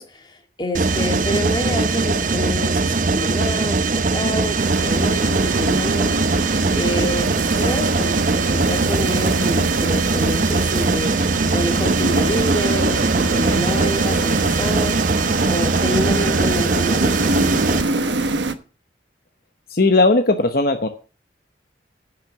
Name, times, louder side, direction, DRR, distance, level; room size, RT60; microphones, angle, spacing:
voice 1, 0.0-6.4 6.7-15.2 15.4-18.3, left 1 dB, 25° left, 4 dB, 2.0 m, -28 dB
Mechanisms, 0.7-17.8, right 3 dB, 45° right, 0.7 m, -21 dB
sound 1, 4.6-18.5, right 2 dB, 85° right, 1.1 m, -24 dB
voice 2, 19.7-20.9, left 2 dB, 55° left, 6 dB, 1.0 m, -17 dB
10.5 x 6.5 x 7.2 m, 0.35 s
head